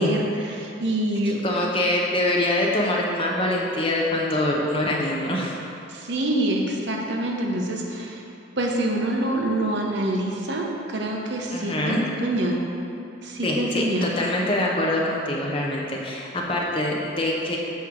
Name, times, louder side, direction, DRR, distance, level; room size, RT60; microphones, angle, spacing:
voice 1, 0.0-1.4 5.9-8.2 8.6-12.6 13.2-14.1, right 1 dB, 60° right, 0 dB, 0.9 m, -26 dB
voice 2, 1.4-5.6 11.5-12.0 13.4-17.6, left 1 dB, 30° left, -2 dB, 0.8 m, -24 dB
8.9 x 3.1 x 6.2 m, 2.8 s
head